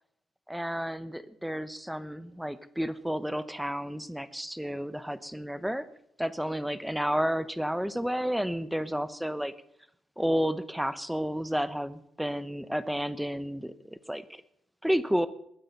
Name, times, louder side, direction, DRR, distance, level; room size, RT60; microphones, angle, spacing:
voice 1, 0.5-5.8 6.2-9.5 10.2-13.7 14.1-14.4 14.8-15.3, equal, 5° right, 14 dB, 1.0 m, -31 dB
22.0 x 9.8 x 5.4 m, 0.75 s
cardioid pair, 90°, 0 cm